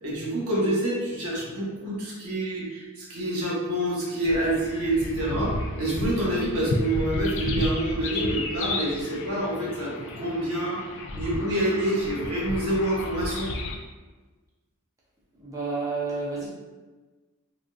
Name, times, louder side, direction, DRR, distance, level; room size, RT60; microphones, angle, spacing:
voice 1, 0.0-10.8 11.1-13.5, right 1 dB, 75° right, -5 dB, 1.0 m, -27 dB
sound 1, 4.2-13.8, left 2 dB, 60° left, 0.4 m, -32 dB
voice 2, 15.4-16.5, right 3 dB, 15° right, -7 dB, 0.6 m, -30 dB
3.5 x 2.5 x 2.3 m, 1.3 s
head